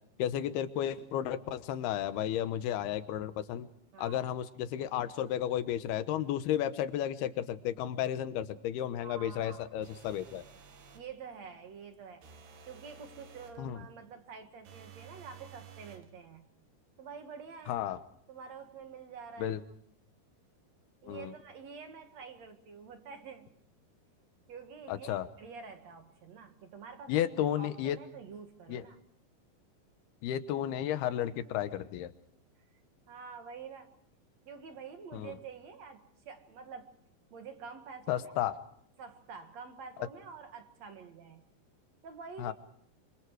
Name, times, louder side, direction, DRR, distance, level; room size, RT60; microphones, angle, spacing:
voice 1, 0.2-3.7 4.0-10.4 13.6-13.8 17.7-18.0 19.4-19.6 21.0-21.3 24.9-25.3 27.1-28.0 28.7-28.8 30.2-32.1 35.1-35.3 38.1-38.5 42.4-42.5, left 11 dB, 85° left, 11 dB, 3.1 m, -33 dB
voice 2, 3.9-4.3 9.0-9.7 10.9-12.3 12.7-16.4 17.0-17.8 18.3-19.6 21.0-23.5 24.5-27.2 27.5-29.0 31.4-31.7 33.1-33.9 34.5-36.9 37.3-38.3 39.0-41.4 42.0-42.5, right 6 dB, 55° right, 6 dB, 2.5 m, -48 dB
sound 1, 9.8-11.1 12.2-13.6 14.7-16.1, right 6 dB, 85° right, 4.3 m, -53 dB
26.5 x 25.5 x 4.8 m, 0.66 s
omnidirectional pair, 4.5 m